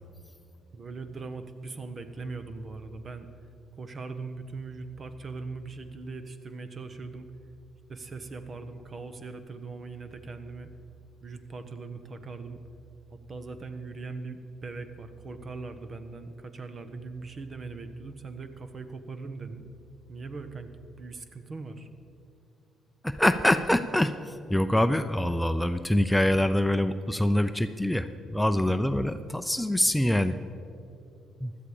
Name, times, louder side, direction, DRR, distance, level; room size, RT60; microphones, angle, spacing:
voice 1, 0.7-3.3 3.8-7.3 7.9-10.7 11.2-12.6 13.1-19.6 20.1-20.7 21.0-21.9, right 3 dB, 45° right, 10 dB, 1.2 m, -40 dB
voice 2, 23.0-30.4 31.4-31.5, left 1 dB, 5° left, 10 dB, 0.6 m, -25 dB
16.0 x 12.0 x 5.0 m, 2.6 s
hypercardioid pair, 55°, 0 cm